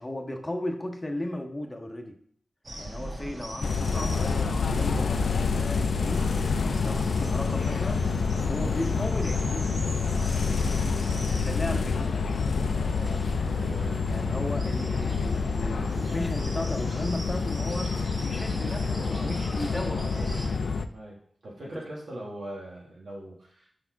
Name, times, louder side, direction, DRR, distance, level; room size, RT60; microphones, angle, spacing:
voice 1, 0.0-2.2 2.8-5.1 5.5-8.1 8.4-9.9 11.4-12.2 14.1-20.3 21.7-21.9, left 1 dB, 20° left, 3 dB, 0.7 m, -35 dB
sound 1, 2.6-20.5, right 1 dB, 50° right, 1.6 m, -39 dB
sound 2, 3.6-20.9, left 5 dB, 80° left, 0.3 m, -27 dB
voice 2, 11.0-11.3 13.5-14.0 20.9-23.7, right 1 dB, 75° right, -4 dB, 1.4 m, -41 dB
5.4 x 4.1 x 4.5 m, 0.62 s
wide cardioid pair, 115°, 0 cm